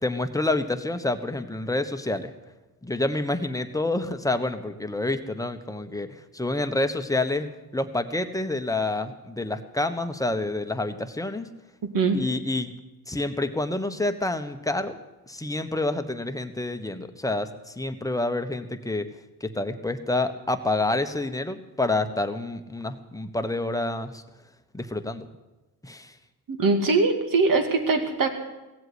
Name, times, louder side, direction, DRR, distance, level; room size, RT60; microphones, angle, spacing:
voice 1, 0.0-2.3 2.8-11.5 12.1-12.7 13.1-15.0 15.3-19.1 19.4-24.2 24.7-25.3 25.8-26.1, left 2 dB, 10° left, 7 dB, 1.2 m, -28 dB
voice 2, 26.5-28.3, right 3 dB, 55° right, 6 dB, 2.4 m, -22 dB
17.0 x 7.9 x 9.8 m, 1.1 s
cardioid pair, 95°, 39 cm